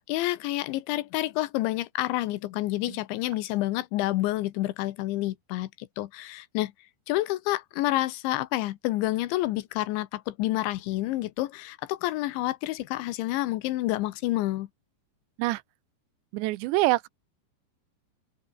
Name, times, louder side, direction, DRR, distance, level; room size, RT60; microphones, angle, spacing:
voice 1, 0.0-6.7 7.1-14.7, left 17 dB, 90° left, 3.4 m, -29 dB
voice 2, 16.3-17.1, right 19 dB, 80° right, 3.0 m, -25 dB
open air
omnidirectional pair, 5.2 m